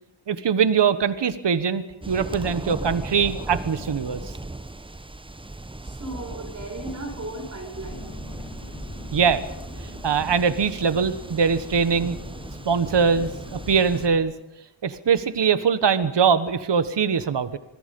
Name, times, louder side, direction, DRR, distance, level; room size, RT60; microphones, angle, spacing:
voice 1, 0.3-4.2 9.1-9.4 10.0-12.2 12.6-14.3 14.8-17.6, right 6 dB, 65° right, 12 dB, 1.5 m, -22 dB
sound 1, 2.0-14.1, right 2 dB, 10° right, 0.8 m, -37 dB
voice 2, 5.8-8.2, right 2 dB, 40° right, 1 dB, 5.3 m, -36 dB
Engine, 7.7-14.2, left 3 dB, 40° left, 4.3 m, -41 dB
27.0 x 21.0 x 5.5 m, 0.87 s
wide cardioid pair, 105°, 46 cm